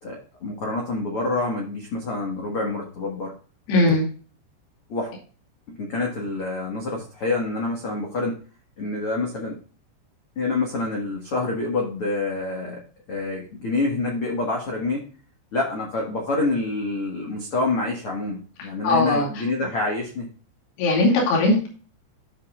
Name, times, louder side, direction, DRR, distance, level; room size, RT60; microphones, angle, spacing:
voice 1, 0.0-3.3 4.9-5.1 5.7-8.4 8.8-9.6 10.3-12.8 13.1-15.1 15.5-20.3, left 2 dB, 90° left, -1 dB, 1.2 m, -27 dB
voice 2, 3.7-4.1 18.6-19.3 20.8-21.7, left 2 dB, 60° left, -2 dB, 4.5 m, -19 dB
13.5 x 5.7 x 2.5 m, 0.39 s
omnidirectional pair, 5.6 m